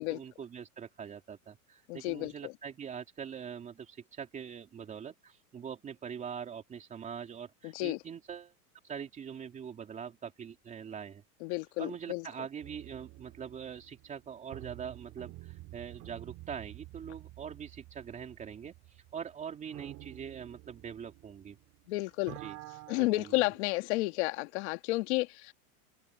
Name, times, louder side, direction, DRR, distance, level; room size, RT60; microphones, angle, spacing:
voice 1, 0.0-8.5 8.8-11.2 11.8-21.6 22.4-22.6, right 7 dB, 15° right, 3.2 m, -43 dB
voice 2, 1.9-2.5 7.6-8.0 11.4-12.3 21.9-22.4 22.9-25.5, left 22 dB, 50° left, 2.0 m, -32 dB
sound 1, 12.6-21.9 22.1-23.6, right 19 dB, 35° right, 4.6 m, -50 dB
supercardioid pair, 160°, 44 cm